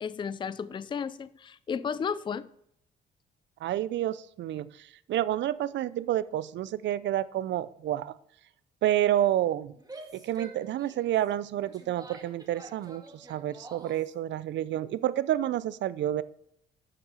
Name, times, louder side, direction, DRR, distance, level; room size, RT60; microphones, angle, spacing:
voice 1, 0.0-2.5, left 6 dB, 25° left, 0.4 m, -33 dB
voice 2, 3.6-8.1 8.8-9.7 10.1-16.2, right 12 dB, 65° right, 0.5 m, -29 dB
Female speech woman speaking / Yell, 9.8-14.1, right 2 dB, 20° right, 1.6 m, -48 dB
6.8 x 5.8 x 5.6 m
cardioid pair, 90°, 20 cm